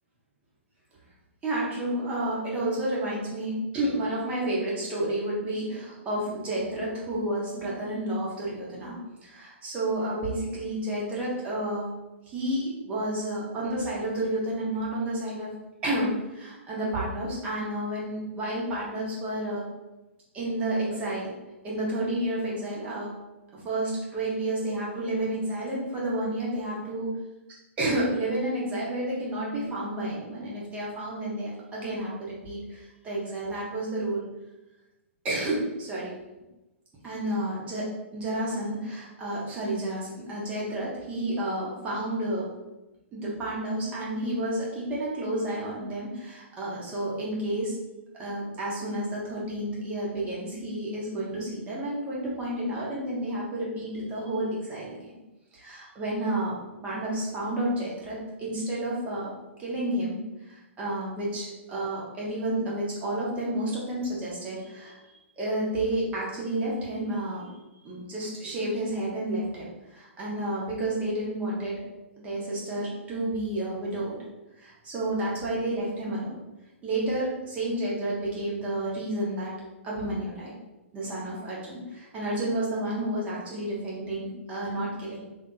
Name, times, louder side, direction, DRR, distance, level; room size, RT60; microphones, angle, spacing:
voice 1, 1.4-8.9 9.2-11.9 12.3-15.5 15.8-19.6 20.3-21.3 21.6-23.1 23.5-27.1 27.8-34.2 35.2-36.1 37.0-37.9 38.1-42.4 43.1-47.7 48.2-55.2 55.5-56.5 56.8-59.3 59.6-60.2 60.5-67.6 67.8-71.8 72.2-74.2 74.6-76.4 76.8-79.5 79.8-80.6 80.9-85.2, right 1 dB, 20° right, -6 dB, 1.3 m, -30 dB
3.4 x 2.7 x 3.9 m, 1.0 s
figure-of-eight pair, 115°, 7 cm